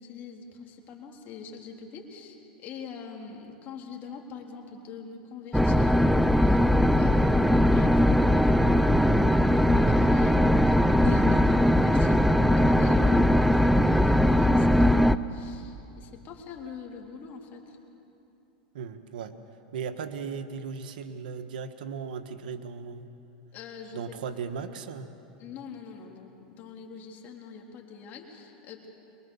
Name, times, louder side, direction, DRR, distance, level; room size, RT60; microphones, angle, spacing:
voice 1, 0.0-17.8 19.9-20.0 23.5-24.1 25.4-28.9, left 5 dB, 40° left, 1 dB, 3.4 m, -43 dB
sound 1, 5.5-15.2, equal, ahead, 0.5 m, -20 dB
voice 2, 18.7-19.3 19.7-23.0 23.9-25.1, right 6 dB, 80° right, 9 dB, 1.3 m, -37 dB
24.0 x 22.5 x 7.1 m, 2.8 s
supercardioid pair, 125°, 5 cm